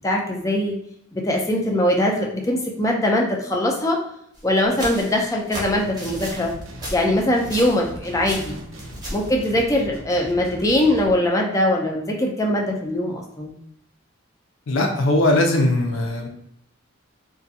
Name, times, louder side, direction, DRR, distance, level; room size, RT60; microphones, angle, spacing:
voice 1, 0.0-0.8 1.1-4.0 4.4-6.5 6.9-8.6 9.1-13.5, left 1 dB, 15° left, 0 dB, 0.4 m, -21 dB
sound 1, 4.3-7.9 8.2-9.3, equal, 20° right, 0.7 m, -34 dB
sound 2, 5.6-11.1, right 1 dB, 85° right, 0.6 m, -39 dB
voice 2, 14.7-16.3, left 1 dB, 70° left, 3 dB, 0.5 m, -19 dB
2.4 x 2.2 x 2.6 m, 0.75 s
head